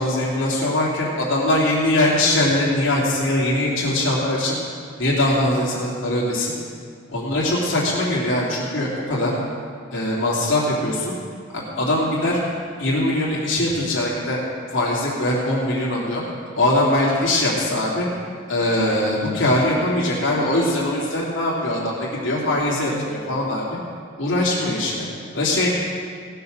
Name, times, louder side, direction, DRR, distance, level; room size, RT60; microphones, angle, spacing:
voice 1, 0.0-4.5 5.0-6.5 7.1-9.3 9.9-11.1 11.5-12.4 12.8-14.4 14.7-16.2 16.6-18.1 18.5-23.6 24.2-25.1 25.3-25.7, left 1 dB, 65° left, -7 dB, 3.0 m, -21 dB
18.5 x 6.8 x 6.6 m, 2.1 s
head